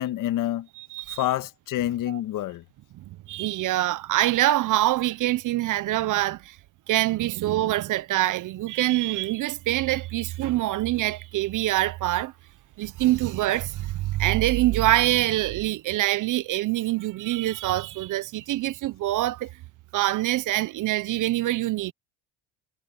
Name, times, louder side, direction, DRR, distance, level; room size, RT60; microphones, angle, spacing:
voice 1, 0.0-0.7 1.1-2.6, left 13 dB, 60° left, 1.8 m, -27 dB
voice 2, 0.8-1.2 3.0-6.6 6.9-12.3 12.8-19.5 19.9-21.9, right 15 dB, 55° right, 1.1 m, -25 dB
supercardioid pair, 80°, 36 cm